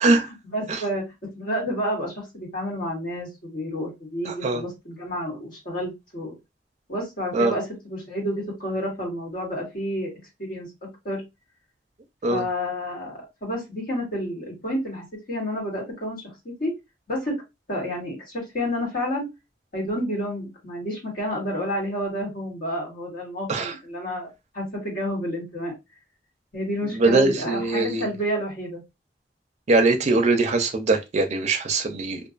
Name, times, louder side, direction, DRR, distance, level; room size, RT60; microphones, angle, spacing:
voice 1, 0.1-6.4 6.9-10.1 10.4-11.2 12.3-16.7 17.1-17.4 17.7-19.3 19.7-24.3 24.5-25.7 26.5-28.8, equal, 55° left, 1.3 m, -30 dB
voice 2, 4.3-4.6 7.3-7.5 12.2-12.4 23.5-23.7 26.9-28.1 29.7-32.2, right 3 dB, 40° right, 0.4 m, -21 dB
2.4 x 2.2 x 2.4 m
head